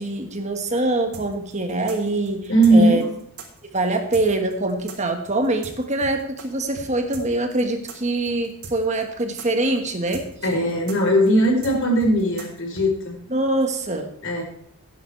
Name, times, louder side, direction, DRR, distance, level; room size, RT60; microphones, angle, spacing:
voice 1, 0.0-3.0 3.7-10.2 13.3-14.1, right 2 dB, 30° right, 5 dB, 1.5 m, -24 dB
sound 1, 1.1-6.5 6.8-6.9 7.1-12.9, right 4 dB, 90° right, 3.7 m, -39 dB
voice 2, 2.5-3.1 10.4-13.1 14.2-14.4, right 1 dB, 60° left, 0 dB, 4.8 m, -18 dB
16.0 x 10.5 x 3.4 m, 0.70 s
head